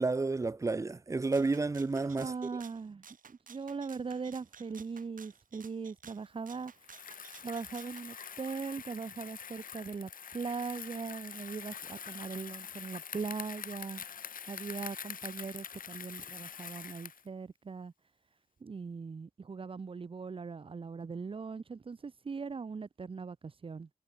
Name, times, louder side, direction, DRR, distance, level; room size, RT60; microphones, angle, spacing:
voice 1, 0.0-2.3, right 3 dB, 20° right, 0.6 m, -30 dB
Rattle (instrument), 1.3-8.1, right 6 dB, 75° right, 6.8 m, -55 dB
voice 2, 2.2-6.7 7.4-14.0 14.5-17.9 18.6-23.9, right 5 dB, 40° right, 1.0 m, -40 dB
Bicycle, 6.8-17.3, left 7 dB, 85° left, 2.9 m, -45 dB
wide cardioid pair, 150°, 14 cm